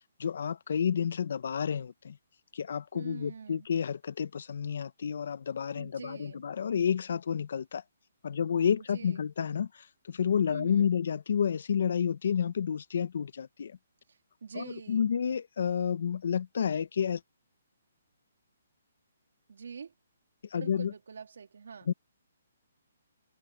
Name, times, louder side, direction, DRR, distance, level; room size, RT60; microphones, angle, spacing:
voice 1, 0.2-2.2 2.5-7.8 8.2-9.7 10.1-13.7 14.5-17.2 20.5-20.9 21.9-22.0, left 7 dB, 60° left, 1.0 m, -30 dB
voice 2, 2.9-3.7 5.7-6.4 8.8-9.3 10.5-10.9 14.4-15.1 19.5-19.9 20.6-21.9, right 6 dB, 75° right, 3.0 m, -45 dB
hypercardioid pair, 165°, 0 cm